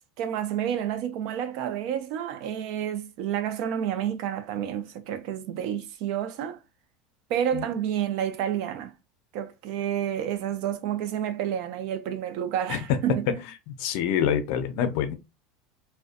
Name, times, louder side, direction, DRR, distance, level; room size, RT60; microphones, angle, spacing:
voice 1, 0.2-6.6 7.3-8.9 9.3-13.4, right 10 dB, 55° right, 0.4 m, -29 dB
voice 2, 13.7-15.1, left 8 dB, 60° left, 0.5 m, -26 dB
2.5 x 2.1 x 2.5 m
supercardioid pair, 155°, 0 cm